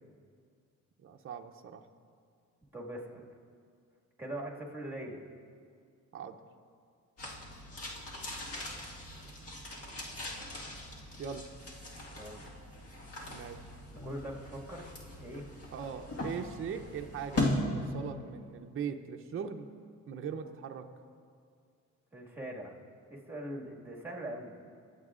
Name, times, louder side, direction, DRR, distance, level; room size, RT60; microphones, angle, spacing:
voice 1, 1.0-1.8 6.1-6.4 11.2-11.5 13.3-13.7 15.7-19.7 20.1-20.9, right 7 dB, 45° right, 5 dB, 0.7 m, -40 dB
voice 2, 2.7-3.2 4.2-5.2 12.1-12.5 14.0-15.5 22.1-22.7 23.1-24.5, right 1 dB, 5° right, -2 dB, 1.9 m, -42 dB
sound 1, 7.2-17.6, left 2 dB, 50° left, 1.7 m, -39 dB
23.0 x 8.1 x 2.5 m, 2.2 s
cardioid pair, 90°, 30 cm